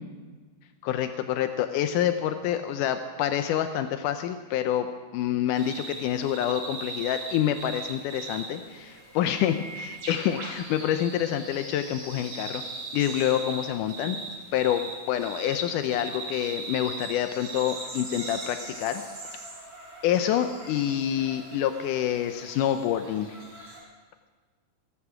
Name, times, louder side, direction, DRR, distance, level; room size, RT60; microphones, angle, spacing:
voice 1, 0.8-12.6 12.9-14.2 14.5-19.0 20.0-23.4, left 10 dB, 85° left, 8 dB, 1.8 m, -27 dB
sound 1, 5.5-23.8, right 3 dB, 50° right, 6.4 m, -40 dB
18.0 x 15.0 x 4.9 m, 1.4 s
omnidirectional pair, 4.4 m